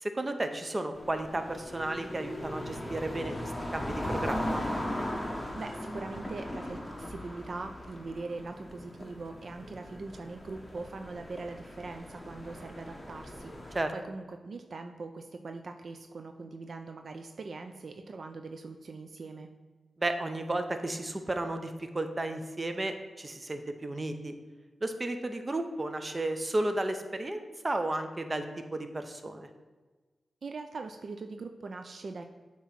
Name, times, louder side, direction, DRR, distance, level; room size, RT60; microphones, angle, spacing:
voice 1, 0.0-4.6 13.7-13.9 20.0-24.3 24.8-28.4 28.7-29.5, right 2 dB, 30° right, 7 dB, 0.7 m, -33 dB
sound 1, 0.9-13.8, left 1 dB, 10° left, 1.1 m, -38 dB
voice 2, 5.5-19.5 30.4-32.3, right 3 dB, 60° right, 6 dB, 0.4 m, -42 dB
8.1 x 3.0 x 5.8 m, 1.3 s
cardioid pair, 75°, 0 cm